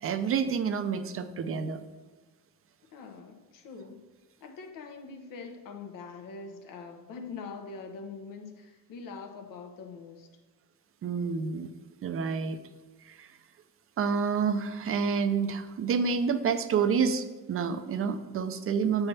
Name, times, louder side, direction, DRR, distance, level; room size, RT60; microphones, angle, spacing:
voice 1, 0.0-1.8 11.0-11.7 12.0-12.6 13.1-13.3 14.0-19.1, right 6 dB, 40° right, 9 dB, 0.5 m, -28 dB
voice 2, 2.9-4.1 4.4-10.3, left 4 dB, 75° left, 5 dB, 1.0 m, -43 dB
7.0 x 3.4 x 5.5 m, 1.3 s
cardioid pair, 115°, 33 cm